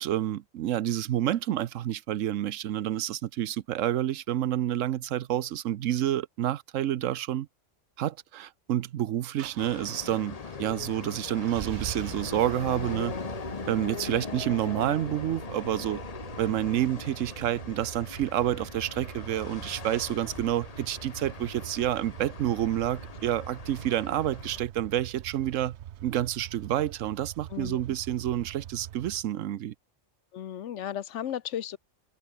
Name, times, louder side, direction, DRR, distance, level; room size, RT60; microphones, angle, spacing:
voice 1, 0.0-7.5 8.0-13.1 13.7-16.0 16.4-25.8 26.0-29.7, right 12 dB, 85° right, 1.1 m, -29 dB
sound 1, 9.4-29.2, right 12 dB, 65° right, 0.9 m, -43 dB
sound 2, 9.6-24.6, left 5 dB, 35° left, 0.8 m, -41 dB
voice 2, 27.5-27.8 30.3-31.8, left 10 dB, 75° left, 1.1 m, -34 dB
omnidirectional pair, 1.3 m